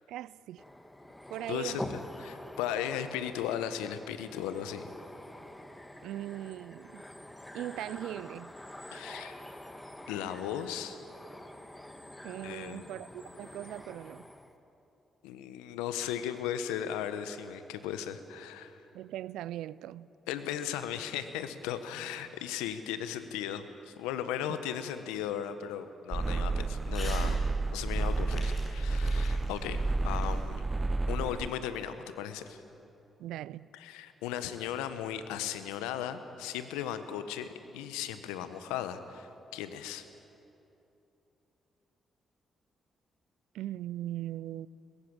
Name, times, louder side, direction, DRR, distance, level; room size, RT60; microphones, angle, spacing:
voice 1, 0.1-0.6 1.3-1.8 6.0-7.0 7.5-8.5 12.2-14.3 18.9-20.1 33.2-33.7 43.5-44.7, right 13 dB, 75° right, 20 dB, 0.4 m, -39 dB
sound 1, 0.6-14.5, left 1 dB, 10° left, 2.1 m, -46 dB
voice 2, 1.5-1.9 2.2-4.9 8.9-9.4 10.1-11.0 12.4-12.9 15.2-18.8 20.3-27.4 27.7-30.6 31.1-32.6 33.7-40.0, left 10 dB, 85° left, 11 dB, 1.2 m, -36 dB
sound 2, 26.1-31.5, right 3 dB, 30° right, 0.5 m, -30 dB
Crumpling crinkling / Tearing, 26.9-27.3 27.6-30.9, left 2 dB, 45° left, 7.8 m, -47 dB
22.0 x 21.0 x 8.9 m, 2.9 s
hypercardioid pair, 40°, 0 cm